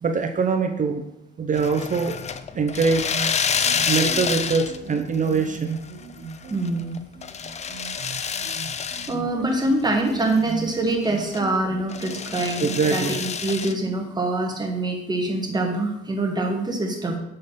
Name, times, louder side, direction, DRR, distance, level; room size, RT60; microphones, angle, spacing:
voice 1, 0.0-1.0 1.4-2.2 2.5-3.2 3.9-5.8 12.6-13.2, right 5 dB, 40° right, 5 dB, 0.7 m, -23 dB
sound 1, 1.5-5.0 5.3-5.9 6.3-9.1 9.5-9.6 10.0-11.5 11.9-13.7, left 6 dB, 35° left, 0.4 m, -28 dB
sound 2, 3.1-12.8, right 4 dB, 65° right, 1.0 m, -38 dB
voice 2, 6.5-7.0 9.1-17.2, right 2 dB, 20° right, 2 dB, 1.5 m, -25 dB
6.6 x 3.8 x 5.3 m, 0.82 s
cardioid pair, 90°, 20 cm